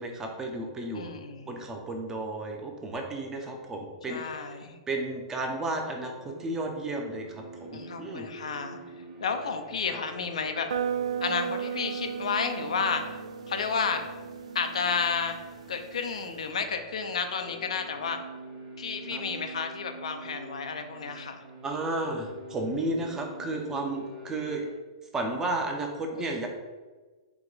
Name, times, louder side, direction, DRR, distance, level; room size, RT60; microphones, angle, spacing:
voice 1, 0.0-1.1 1.5-4.5 4.9-8.3 19.1-19.2 21.6-24.7 25.1-26.5, right 2 dB, 15° right, 2 dB, 0.6 m, -33 dB
voice 2, 0.9-1.6 4.1-4.8 7.7-8.8 9.2-10.7 11.2-13.0 13.5-14.0 14.5-15.4 15.7-18.2 18.8-21.4 26.2-26.3, left 5 dB, 90° left, 6 dB, 0.5 m, -31 dB
sound 1, 5.5-24.7, right 1 dB, 50° right, 1.0 m, -46 dB
sound 2, 10.7-16.5, right 7 dB, 85° right, 0.4 m, -36 dB
4.6 x 2.2 x 3.9 m, 1.3 s
hypercardioid pair, 140°, 3 cm